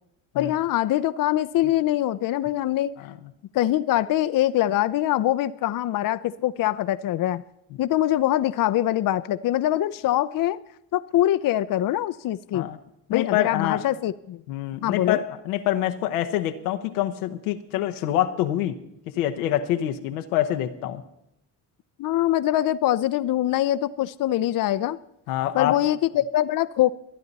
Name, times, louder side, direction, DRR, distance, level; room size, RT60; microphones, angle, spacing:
voice 1, 0.3-2.9 3.5-7.4 7.8-10.6 10.9-12.7 13.1-14.4 14.8-15.2 22.0-25.0 25.5-26.9, left 13 dB, 50° left, 12 dB, 0.6 m, -23 dB
voice 2, 13.1-13.8 14.5-18.8 19.1-21.0 25.3-25.8, left 12 dB, 90° left, 7 dB, 0.9 m, -26 dB
23.5 x 9.5 x 4.0 m, 0.80 s
hypercardioid pair, 55°, 43 cm